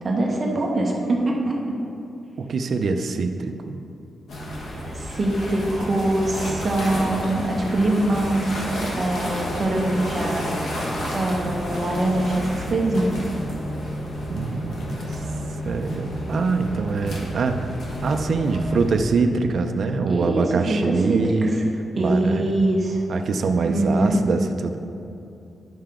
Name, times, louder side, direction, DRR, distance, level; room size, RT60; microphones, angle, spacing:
voice 1, 0.0-1.8 4.9-8.6 8.9-10.8 11.1-13.3 20.1-21.2 22.0-23.0 23.7-24.2, right 1 dB, 30° right, -1 dB, 0.9 m, -23 dB
voice 2, 2.4-3.8 14.3-15.2 15.6-17.7 18.0-21.6 22.0-22.7 23.1-24.8, right 4 dB, 50° right, 6 dB, 0.5 m, -24 dB
sound 1, 4.3-19.0, equal, 75° left, 1.6 m, -30 dB
12.0 x 5.7 x 3.8 m, 2.6 s
wide cardioid pair, 170°, 0 cm